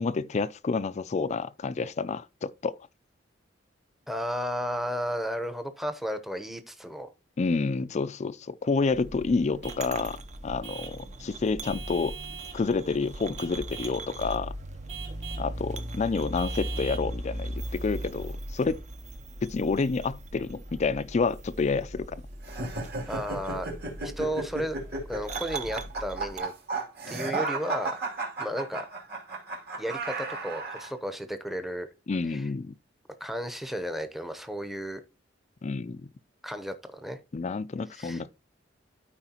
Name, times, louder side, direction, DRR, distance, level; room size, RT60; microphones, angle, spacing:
voice 1, 0.0-2.8 7.4-10.2 10.4-12.2 12.5-14.5 15.4-18.8 19.4-22.2 32.1-32.8 35.6-36.1 37.3-38.3, left 4 dB, 35° left, 0.4 m, -29 dB
voice 2, 4.1-7.1 23.1-23.7 24.0-24.8 25.1-26.5 27.1-27.9 28.4-28.9 29.8-31.9 32.3-32.5 33.2-35.0 36.4-37.2 37.9-38.2, equal, ahead, 0.8 m, -33 dB
sound 1, 8.9-26.4, right 1 dB, 40° right, 0.7 m, -39 dB
Vehicle horn car horn honking / Truck, 9.6-9.9 10.6-11.0 11.6-12.6 13.4-14.0 14.9-15.5 16.4-17.1, right 8 dB, 80° right, 2.4 m, -42 dB
sound 2, 22.4-30.9, right 3 dB, 55° right, 2.9 m, -34 dB
13.0 x 4.6 x 2.9 m
head